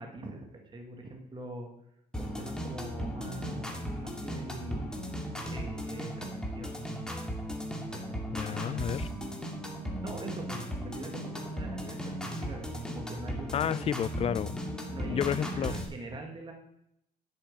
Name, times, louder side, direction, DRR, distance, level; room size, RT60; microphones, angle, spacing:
voice 1, 0.0-1.7 2.2-5.0 5.5-6.3 6.5-6.7 7.9-8.2 10.0-13.8 14.9-16.5, right 2 dB, 30° right, 2 dB, 2.0 m, -43 dB
sound 1, 2.1-15.8, equal, 5° left, 2.0 m, -36 dB
voice 2, 8.4-9.1 13.5-14.6 15.1-15.7, left 9 dB, 35° left, 19 dB, 0.4 m, -31 dB
7.9 x 7.2 x 7.5 m, 0.80 s
cardioid pair, 110°, 17 cm